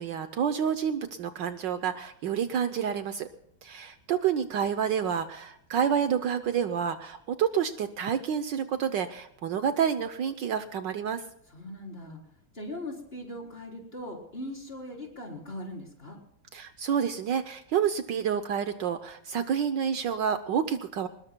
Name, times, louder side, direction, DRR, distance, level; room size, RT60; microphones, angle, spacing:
voice 1, 0.0-3.3 3.6-11.2 16.5-21.1, right 8 dB, 70° right, 10 dB, 1.3 m, -29 dB
voice 2, 11.5-12.2 12.5-16.2, left 1 dB, 25° left, 0 dB, 4.1 m, -40 dB
25.0 x 20.5 x 2.2 m, 0.71 s
omnidirectional pair, 2.2 m